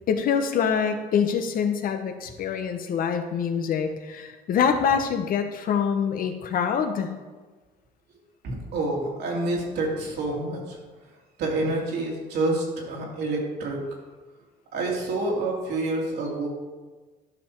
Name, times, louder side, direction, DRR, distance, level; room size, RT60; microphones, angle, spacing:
voice 1, 0.1-7.1, left 7 dB, 55° left, 7 dB, 1.0 m, -25 dB
voice 2, 8.4-10.8 11.4-13.8 14.7-16.5, right 2 dB, 70° right, -2 dB, 2.8 m, -28 dB
11.5 x 5.7 x 4.5 m, 1.3 s
cardioid pair, 110°, 17 cm